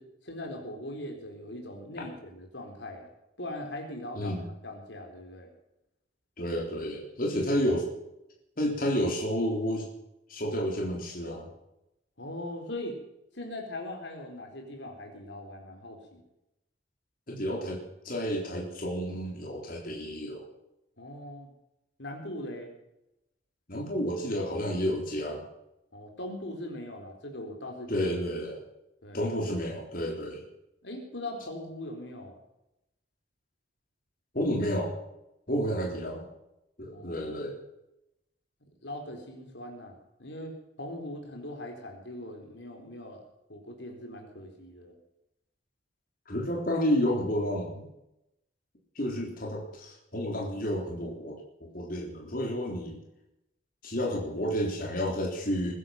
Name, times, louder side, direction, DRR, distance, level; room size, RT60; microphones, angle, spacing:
voice 1, 0.0-3.1 3.4-5.5 12.2-13.0 13.3-16.2 21.0-21.5 22.0-22.7 25.9-28.1 29.0-29.3 30.8-32.4 35.5-35.6 35.9-36.0 36.9-37.4 38.8-43.2 43.5-44.9, left 1 dB, 80° left, 2 dB, 4.1 m, -40 dB
voice 2, 6.4-7.9 8.6-9.9 10.3-11.5 17.3-17.8 18.0-20.4 23.7-25.4 27.9-28.6 29.1-30.4 34.3-34.9 35.5-36.3 36.8-37.6 46.3-47.9 49.0-53.0 53.8-55.7, equal, 50° left, -1 dB, 3.7 m, -30 dB
21.0 x 11.5 x 5.9 m, 0.86 s
head